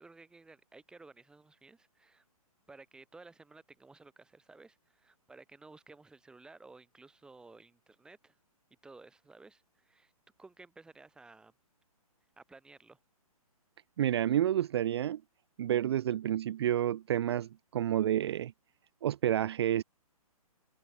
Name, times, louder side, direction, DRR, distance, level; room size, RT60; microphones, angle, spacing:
voice 1, 0.0-2.3 2.7-8.4 8.8-10.1 10.4-11.5 12.4-13.0, right 3 dB, 5° right, 1.4 m, -55 dB
voice 2, 14.0-15.2 15.6-18.5 19.0-19.8, right 11 dB, 45° right, 0.4 m, -29 dB
hypercardioid pair, 150°, 19 cm